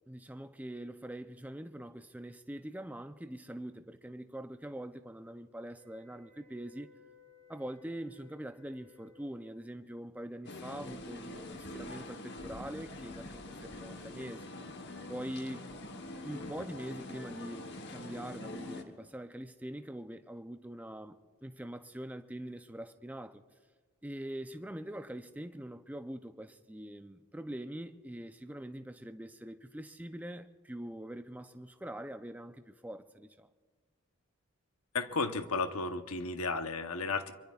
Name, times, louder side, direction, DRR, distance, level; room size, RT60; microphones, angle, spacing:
voice 1, 0.0-6.9 7.5-14.5 15.1-15.6 16.2-23.4 24.0-33.5, right 1 dB, 5° right, 0.4 m, -43 dB
sound 1, 5.7-9.7, left 3 dB, 25° right, 5.6 m, -62 dB
sound 2, 10.5-18.8, left 2 dB, 50° left, 1.1 m, -45 dB
voice 2, 34.9-37.3, left 4 dB, 80° left, 0.9 m, -33 dB
25.5 x 23.5 x 2.4 m
head